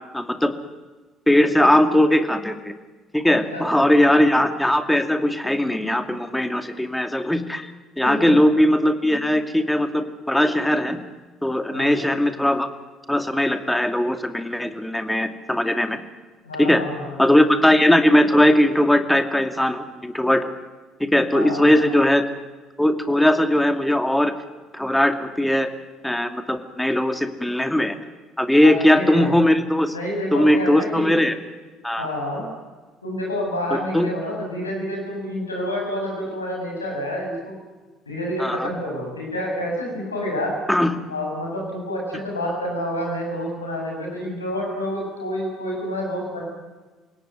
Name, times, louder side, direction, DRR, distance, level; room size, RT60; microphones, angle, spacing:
voice 1, 0.1-0.5 1.3-2.7 3.1-7.7 8.0-11.0 11.4-12.7 13.1-16.0 16.6-16.8 17.2-20.5 21.0-22.2 22.8-24.3 24.7-25.7 26.0-27.9 28.4-29.9 30.3-31.4 31.8-32.1 33.7-34.1 38.4-38.7 40.7-40.9, left 1 dB, 5° left, 8 dB, 2.5 m, -19 dB
voice 2, 3.3-4.2 8.0-8.4 11.7-12.0 16.4-17.2 21.3-22.0 28.6-29.3 29.9-31.2 32.0-32.4 33.0-37.5 38.1-40.6 41.1-46.4, left 1 dB, 85° left, -1 dB, 7.5 m, -28 dB
28.0 x 17.5 x 9.5 m, 1.2 s
figure-of-eight pair, 55°, 0 cm